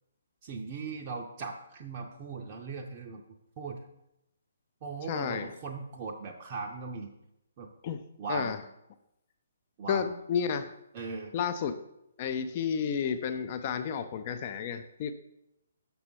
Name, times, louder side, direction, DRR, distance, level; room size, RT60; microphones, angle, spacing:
voice 1, 0.4-3.2 3.6-3.8 4.8-7.1 7.6-7.7 8.2-8.6 9.8-10.2 10.9-11.3, right 4 dB, 30° right, 1 dB, 0.6 m, -38 dB
voice 2, 5.1-5.5 7.8-8.0 8.3-8.6 9.9-10.7 11.3-11.8 12.2-15.1, left 7 dB, 35° left, 10 dB, 0.4 m, -31 dB
6.6 x 5.4 x 4.3 m, 0.85 s
figure-of-eight pair, 130°, 0 cm